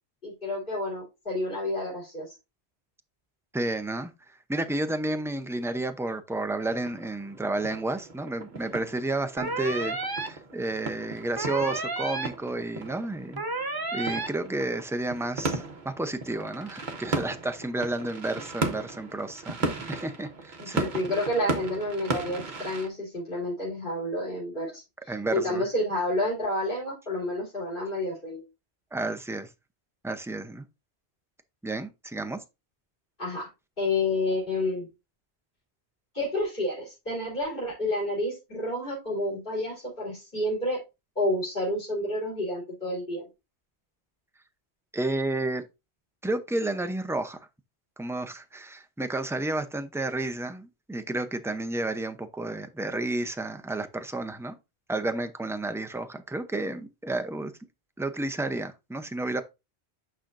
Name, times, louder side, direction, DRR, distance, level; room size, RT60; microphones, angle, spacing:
voice 1, 0.2-2.3 20.6-28.4 33.2-33.5 33.8-34.9 36.1-40.8 41.2-43.2, left 1 dB, 50° left, 3.4 m, -30 dB
voice 2, 3.5-4.1 4.5-20.9 24.6-24.7 25.1-25.6 28.9-29.5 30.0-30.6 31.6-32.4 44.9-45.6 46.2-47.4 48.0-54.6 54.9-57.5 58.0-59.4, right 2 dB, 5° right, 0.5 m, -31 dB
sound 1, 6.6-22.9, right 3 dB, 45° right, 1.1 m, -36 dB
sound 2, 9.4-10.3 11.4-12.3 13.4-14.3, right 2 dB, 20° right, 0.9 m, -31 dB
8.9 x 5.7 x 2.6 m
omnidirectional pair, 1.1 m